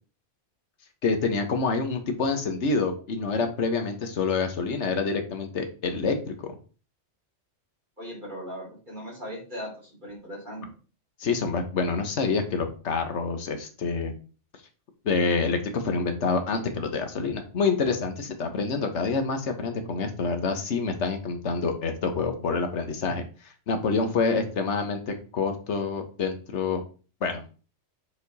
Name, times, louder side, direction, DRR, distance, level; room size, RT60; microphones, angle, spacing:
voice 1, 1.0-6.6 11.2-14.1 15.0-23.2 23.7-26.8 27.2-27.4, left 4 dB, 75° left, 6 dB, 1.4 m, -27 dB
voice 2, 8.0-9.7 10.0-10.6, equal, 40° right, -3 dB, 3.6 m, -38 dB
7.7 x 4.3 x 4.1 m, 0.36 s
omnidirectional pair, 1.2 m